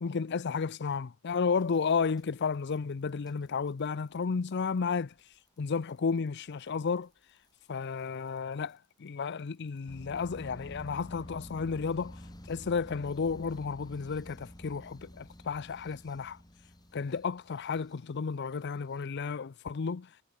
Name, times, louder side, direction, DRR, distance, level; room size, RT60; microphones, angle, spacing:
voice 1, 0.0-5.1 5.6-7.1 7.7-12.2 12.5-16.4 16.9-20.1, left 5 dB, 55° left, 0.5 m, -32 dB
sound 1, 1.6-2.7 3.1-3.3 3.7-3.9 4.2-4.3 4.5-4.6 5.2-5.3 6.1-6.2 6.6-6.7 8.0-8.1 8.7-8.8 9.9-18.2, equal, 20° left, 4.8 m, -49 dB
head